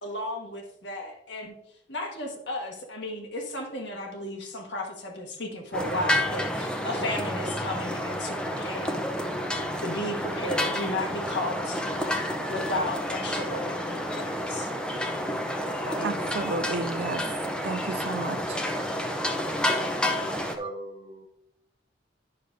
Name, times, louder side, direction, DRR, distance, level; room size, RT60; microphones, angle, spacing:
voice 1, 0.0-1.5 1.9-9.0 9.8-11.8 12.5-14.7 15.8-16.4, left 1 dB, 70° left, 1.5 m, -34 dB
sound 1, 5.7-20.6, left 1 dB, 5° left, 0.7 m, -30 dB
voice 2, 16.0-17.2 17.6-18.6, right 3 dB, 65° right, 0.4 m, -32 dB
voice 3, 20.4-21.3, right 2 dB, 30° right, 0.9 m, -39 dB
10.5 x 6.6 x 2.6 m
head